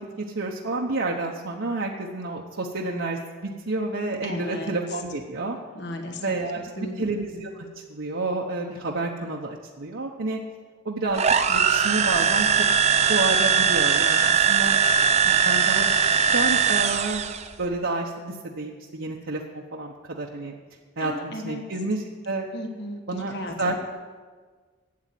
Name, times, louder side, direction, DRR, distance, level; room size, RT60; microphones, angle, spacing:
voice 1, 0.0-5.6 6.2-10.4 10.8-12.7 13.0-14.7 15.2-15.9 16.3-17.3 17.6-20.5 21.0-22.5 23.1-23.7, right 2 dB, 60° right, -2 dB, 1.0 m, -30 dB
voice 2, 4.2-4.7 5.7-6.4 6.8-7.0 21.0-21.6 22.5-23.7, left 1 dB, 55° left, 4 dB, 1.3 m, -35 dB
sound 1, 11.1-17.5, right 6 dB, 30° right, 0.5 m, -20 dB
12.5 x 8.7 x 7.7 m, 1.5 s
head